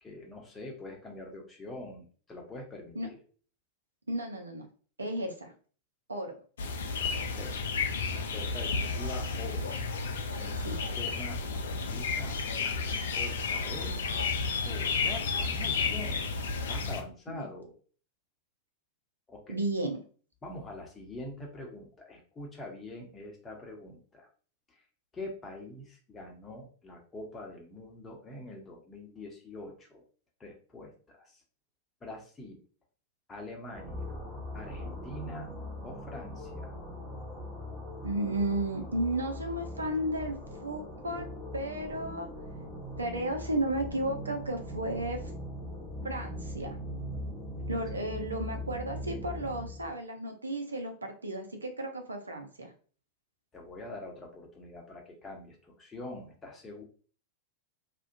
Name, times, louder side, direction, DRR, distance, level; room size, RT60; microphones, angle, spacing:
voice 1, 0.0-3.2 7.3-7.5 8.1-9.7 10.4-14.1 14.6-16.3 16.7-17.7 19.3-19.6 20.4-24.3 24.7-24.8 25.1-30.0 30.4-31.4 32.0-32.6 33.3-34.0 34.5-35.6 35.8-36.7 47.7-47.8 53.5-56.8, left 2 dB, 20° left, 1 dB, 0.8 m, -44 dB
voice 2, 4.1-4.7 5.0-5.5 6.1-6.4 10.6-10.8 17.3-17.5 19.5-20.0 38.0-40.4 40.6-41.3 41.5-42.3 43.0-45.3 46.0-46.8 47.7-52.7, right 1 dB, 80° right, 5 dB, 0.5 m, -33 dB
sound 1, 6.6-17.0, left 4 dB, 65° left, 0.4 m, -32 dB
sound 2, 33.7-49.9, equal, 15° right, 1.0 m, -40 dB
2.4 x 2.1 x 2.5 m, 0.41 s
figure-of-eight pair, 90°, 0 cm